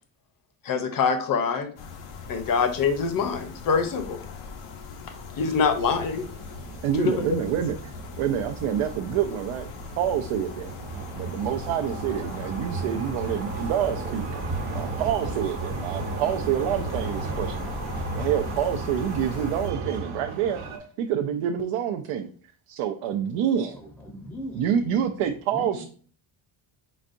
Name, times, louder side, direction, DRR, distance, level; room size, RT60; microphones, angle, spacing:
voice 1, 0.6-1.7 2.3-4.2 5.4-6.3 7.0-7.2, left 5 dB, 45° left, 8 dB, 0.7 m, -24 dB
sound 1, 1.8-19.7, left 4 dB, 90° left, 0.9 m, -40 dB
sound 2, 5.7-20.8, right 3 dB, 65° right, 1.0 m, -35 dB
voice 2, 6.8-9.7 10.0-10.7 11.2-14.3 14.7-17.7 18.1-20.6 21.0-22.3 22.7-23.8 24.5-25.8, right 9 dB, 90° right, 6 dB, 0.6 m, -27 dB
voice 3, 23.7-24.8 25.5-25.8, equal, ahead, 1 dB, 0.5 m, -39 dB
4.5 x 4.1 x 2.5 m, 0.44 s
cardioid pair, 150°, 50 cm